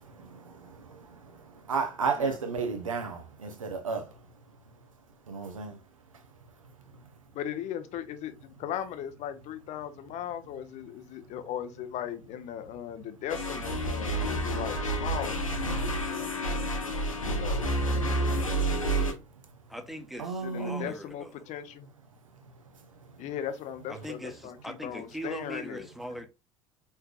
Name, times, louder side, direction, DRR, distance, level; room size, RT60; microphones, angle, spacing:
voice 1, 0.0-4.2 5.3-5.8 16.1-16.2 20.2-20.9, right 5 dB, 80° right, 0.7 m, -33 dB
voice 2, 7.3-15.5 17.2-18.3 20.4-21.9 23.2-25.9, left 10 dB, 45° left, 0.7 m, -38 dB
sound 1, 13.3-19.1, right 1 dB, 85° left, 0.8 m, -29 dB
voice 3, 19.7-21.3 23.9-26.3, equal, ahead, 0.9 m, -40 dB
4.5 x 3.3 x 2.3 m
figure-of-eight pair, 60°, 17 cm